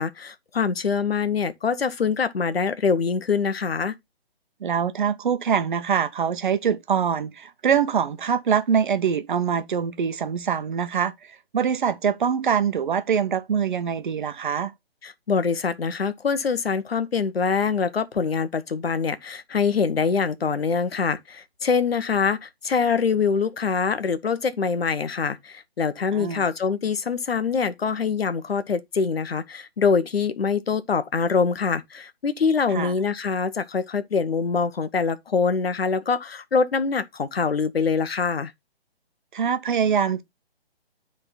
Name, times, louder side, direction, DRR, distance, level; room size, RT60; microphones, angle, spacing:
voice 1, 0.0-3.9 15.0-38.5, left 5 dB, 70° left, 1.1 m, -24 dB
voice 2, 4.6-14.7 26.1-26.5 32.7-32.9 39.3-40.2, right 7 dB, 50° right, 1.0 m, -24 dB
9.8 x 3.8 x 4.2 m
figure-of-eight pair, 150°, 31 cm